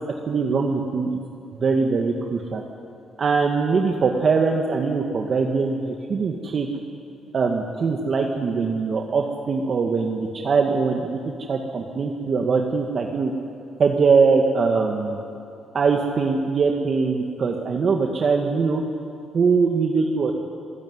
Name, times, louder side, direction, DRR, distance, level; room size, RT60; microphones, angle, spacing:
voice 1, 0.3-1.1 1.5-2.6 3.2-6.7 7.3-11.2 11.5-13.3 13.8-15.2 15.7-18.8 19.3-20.3, right 4 dB, 45° right, 2 dB, 1.9 m, -22 dB
27.5 x 16.0 x 9.7 m, 2.7 s
cardioid pair, 100°, 0 cm